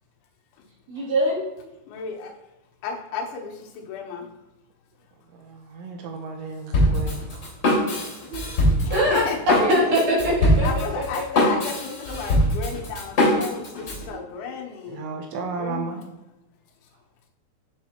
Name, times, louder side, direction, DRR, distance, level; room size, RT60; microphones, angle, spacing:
voice 1, 0.9-1.4 7.9-8.4 8.9-11.2 14.1-14.6, equal, 45° right, -6 dB, 3.8 m, -24 dB
voice 2, 1.9-2.3 2.8-4.3 8.8-9.4 10.6-15.0 15.6-16.0, left 6 dB, 80° left, 1 dB, 3.4 m, -33 dB
voice 3, 5.3-8.0 14.9-16.1, right 4 dB, 80° right, 3 dB, 3.0 m, -34 dB
Drum kit, 6.7-14.0, left 1 dB, 35° left, 3.7 m, -22 dB
8.0 x 7.9 x 2.9 m, 0.94 s
omnidirectional pair, 5.4 m